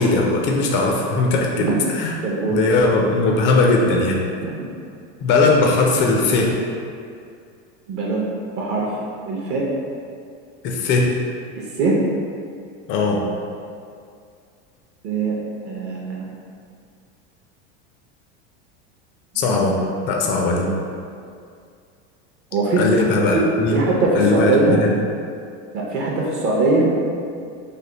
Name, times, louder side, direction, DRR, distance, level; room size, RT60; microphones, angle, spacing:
voice 1, 0.0-2.1 2.5-4.2 5.2-6.5 10.6-11.2 12.9-13.3 19.4-19.7 20.1-20.7 22.8-23.8 24.2-24.9, left 3 dB, 35° left, 0 dB, 0.4 m, -19 dB
voice 2, 2.2-2.6 4.4-4.5 7.9-8.2 8.6-8.9 9.3-9.7 11.8-12.0 15.0-15.3 15.7-16.3 19.3-19.9 22.5-22.8 23.3-23.4 23.7-24.8 25.7-26.9, right 3 dB, 40° right, -4 dB, 0.6 m, -21 dB
3.4 x 2.1 x 3.8 m, 2.3 s
supercardioid pair, 135°, 35 cm